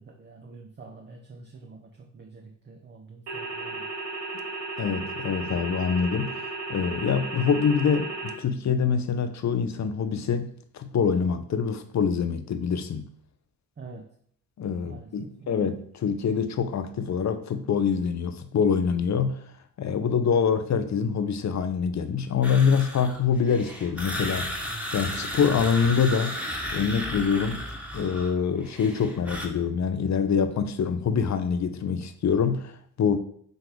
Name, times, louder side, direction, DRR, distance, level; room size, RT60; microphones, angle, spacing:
voice 1, 0.0-3.9 13.8-14.2 14.8-15.5, right 4 dB, 25° right, 0.8 m, -46 dB
sound 1, 3.3-8.3, right 3 dB, 70° right, 1.6 m, -34 dB
voice 2, 4.8-13.1 14.6-19.4 19.8-24.7 24.9-26.4 26.7-27.6 27.9-33.2, left 6 dB, 40° left, 0.7 m, -25 dB
sound 2, 22.4-28.3 28.6-29.5, equal, 5° right, 1.5 m, -34 dB
6.2 x 3.2 x 5.0 m
hypercardioid pair, 45°, 43 cm